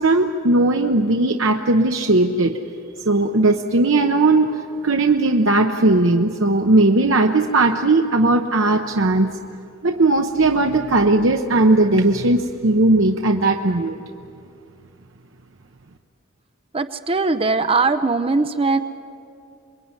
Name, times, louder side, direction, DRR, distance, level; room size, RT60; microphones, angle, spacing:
voice 1, 0.0-2.6 3.1-9.4 9.8-14.0, right 2 dB, 65° right, 4 dB, 0.9 m, -17 dB
voice 2, 16.7-18.8, right 3 dB, 25° right, 10 dB, 0.6 m, -20 dB
26.0 x 22.0 x 9.7 m, 2.6 s
head